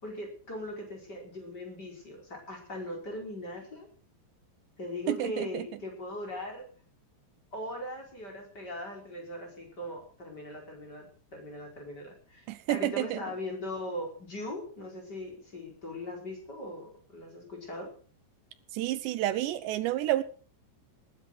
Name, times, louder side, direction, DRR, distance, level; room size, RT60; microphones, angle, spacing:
voice 1, 0.0-3.9 4.8-6.6 7.5-11.1 11.3-17.9, left 1 dB, 20° left, 1 dB, 5.0 m, -40 dB
voice 2, 5.1-5.7 12.5-13.2 18.7-20.2, right 14 dB, 80° right, 14 dB, 3.0 m, -30 dB
19.5 x 10.5 x 6.1 m, 0.41 s
omnidirectional pair, 5.1 m